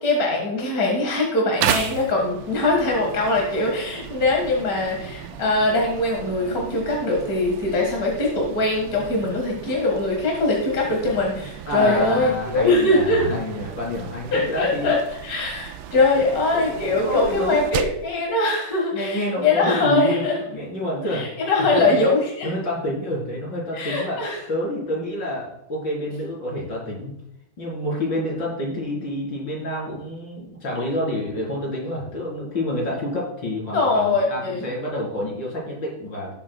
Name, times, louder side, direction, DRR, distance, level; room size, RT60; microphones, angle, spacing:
voice 1, 0.0-13.2 14.3-20.4 21.1-22.5 23.7-24.4 33.7-34.7, left 2 dB, 45° left, -1 dB, 2.2 m, -22 dB
sound 1, 1.6-18.1, right 9 dB, 80° right, 1.4 m, -34 dB
voice 2, 11.7-14.9 16.2-16.3 16.5-17.7 18.9-20.2 20.5-21.3 21.6-22.0 22.4-24.2 24.5-27.1 27.6-36.3, left 1 dB, 65° left, -4 dB, 4.8 m, -28 dB
18.0 x 8.2 x 2.3 m, 0.82 s
omnidirectional pair, 2.2 m